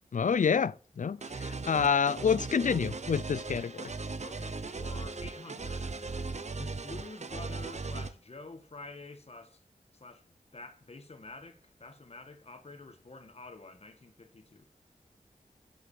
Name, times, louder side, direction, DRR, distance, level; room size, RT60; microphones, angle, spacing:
voice 1, 0.1-3.9, left 6 dB, 60° left, 0.5 m, -28 dB
sound 1, 1.2-8.1, right 3 dB, 50° right, 0.9 m, -38 dB
voice 2, 4.2-6.1 6.5-9.6 10.0-14.7, left 3 dB, 45° left, 1.9 m, -48 dB
8.0 x 7.9 x 7.7 m
wide cardioid pair, 80°, 15 cm